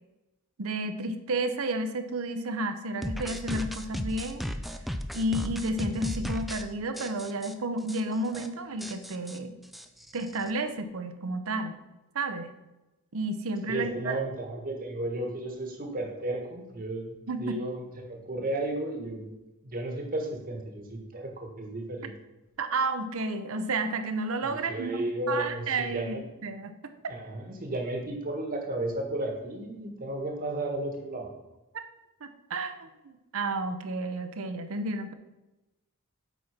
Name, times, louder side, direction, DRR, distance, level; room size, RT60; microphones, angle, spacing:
voice 1, 0.6-4.4 5.1-9.5 10.1-11.7 12.1-12.5 13.1-14.1 17.3-17.6 22.6-25.0 25.3-26.2 26.4-26.9 32.2-35.1, right 2 dB, 65° right, 9 dB, 0.8 m, -31 dB
sound 1, 3.0-6.6 7.0-7.5 7.9-8.0 8.3-8.5 8.8-10.5, equal, ahead, 0.4 m, -35 dB
voice 2, 13.7-19.3 19.6-22.1 24.4-26.2 27.1-31.3, right 1 dB, 40° right, 2 dB, 1.5 m, -33 dB
8.1 x 4.4 x 5.9 m, 1.0 s
head